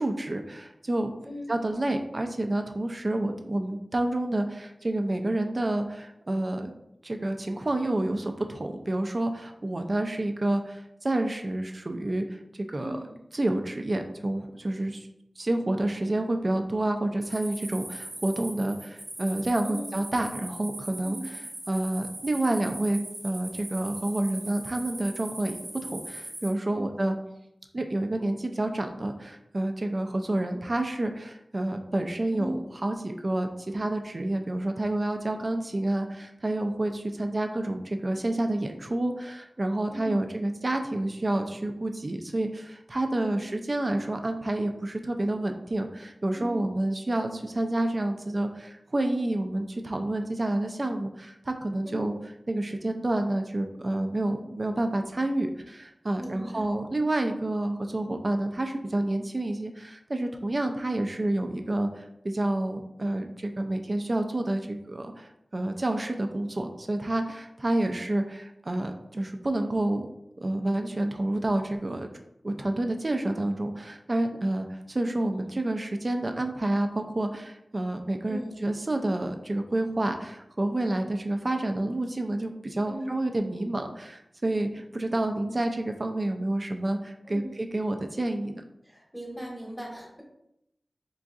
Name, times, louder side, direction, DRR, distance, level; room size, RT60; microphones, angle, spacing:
voice 1, 0.0-1.1 1.5-6.7 7.0-12.2 12.7-13.0 13.3-15.1 15.4-25.6 25.8-27.2 27.7-52.2 52.5-70.1 70.4-72.1 72.4-88.6, right 1 dB, 45° right, 5 dB, 0.3 m, -29 dB
voice 2, 12.8-13.1 19.6-20.0 21.0-21.3 26.7-26.9 32.3-32.7 39.9-40.3 43.2-43.5 46.3-46.7 51.8-52.1 56.2-56.7 78.3-78.5 82.9-83.1 87.2-87.6 88.8-90.2, equal, 5° right, -2 dB, 0.9 m, -38 dB
sound 1, 17.2-26.5, right 1 dB, 85° right, 0.8 m, -40 dB
3.8 x 2.6 x 2.3 m, 0.82 s
wide cardioid pair, 50°, 0 cm